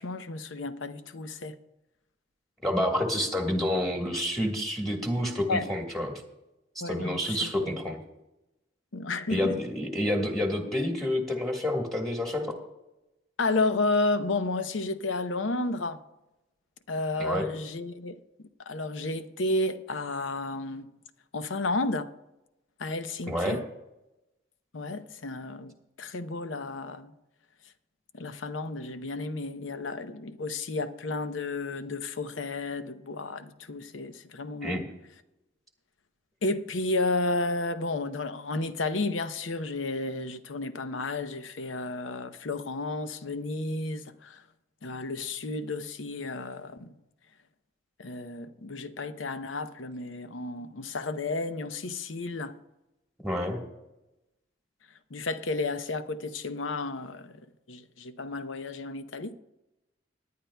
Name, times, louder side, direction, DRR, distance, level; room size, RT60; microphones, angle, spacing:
voice 1, 0.0-1.6 5.5-5.7 6.8-7.9 8.9-9.6 13.4-16.0 16.9-18.2 18.7-20.9 21.3-22.1 22.8-23.6 24.7-27.1 28.1-34.8 36.4-44.4 44.8-46.9 48.0-52.6 55.1-57.4 57.7-59.4, left 2 dB, 85° left, 0.7 m, -32 dB
voice 2, 2.6-6.2 6.8-8.0 9.3-12.6 17.2-17.5 23.3-23.6 34.6-34.8 53.2-53.6, left 1 dB, ahead, 1.4 m, -29 dB
20.0 x 10.5 x 2.3 m
head